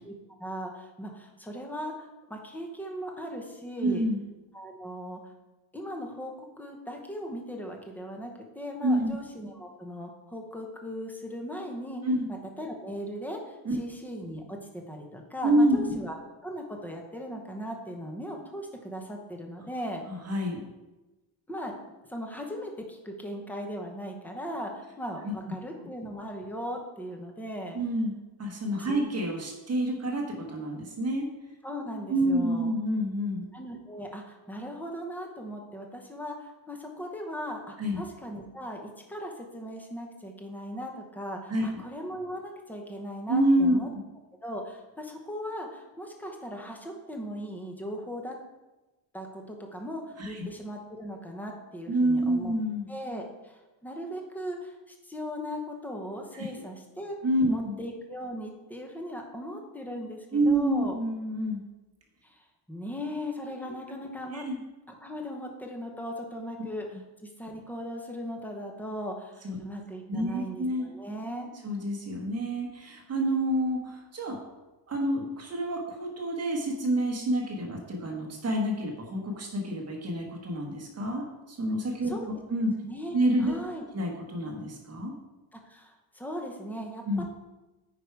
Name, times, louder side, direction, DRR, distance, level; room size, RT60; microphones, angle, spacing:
voice 1, 0.4-4.0 4.5-5.3 5.7-16.1 16.4-20.0 21.5-21.7 22.1-27.8 28.8-29.0 31.6-32.7 33.5-43.9 44.4-48.4 49.1-52.5 52.9-57.2 57.5-61.0 62.2-64.5 65.0-71.5 82.0-82.3 82.8-83.9 85.5-87.2, equal, 5° left, 1 dB, 0.9 m, -38 dB
voice 2, 3.8-4.2 8.8-9.1 12.0-12.2 13.6-13.8 15.4-16.0 20.2-20.6 25.2-25.3 27.7-28.1 28.4-31.3 32.1-33.4 37.8-38.0 41.5-41.7 43.3-43.8 50.2-50.4 51.9-52.8 56.3-56.5 57.2-57.7 60.3-61.6 64.3-64.6 69.4-69.6 70.1-70.9 71.6-74.4 74.9-81.2 81.5-82.7 83.1-83.5 83.9-85.1 87.0-87.2, right 1 dB, 35° right, 0 dB, 1.5 m, -28 dB
9.6 x 4.8 x 4.7 m, 1.1 s
wide cardioid pair, 175°, 45 cm